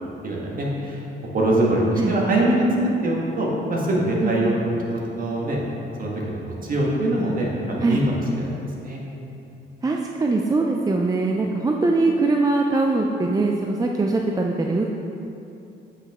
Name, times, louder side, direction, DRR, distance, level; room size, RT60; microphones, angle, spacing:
voice 1, 0.2-1.0 1.3-2.6 3.0-4.5 4.9-5.6 6.0-8.0 8.4-9.0, right 1 dB, 45° right, -3 dB, 1.6 m, -23 dB
voice 2, 4.2-4.6 7.8-8.0 9.8-14.9, right 3 dB, 20° right, 1 dB, 0.4 m, -22 dB
8.1 x 5.6 x 3.6 m, 2.8 s
cardioid pair, 90°, 20 cm